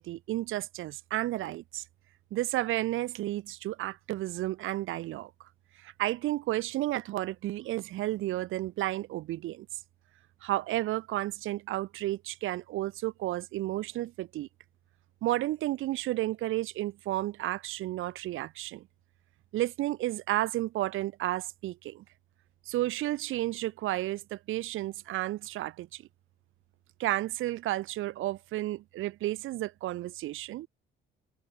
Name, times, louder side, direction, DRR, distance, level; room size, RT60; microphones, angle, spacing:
voice 1, 0.0-1.8 2.3-5.3 5.8-9.7 10.4-14.5 15.2-18.9 19.5-22.0 22.7-26.0 27.0-30.7, right 15 dB, 90° right, 2.3 m, -32 dB
cardioid pair, 90°, 20 cm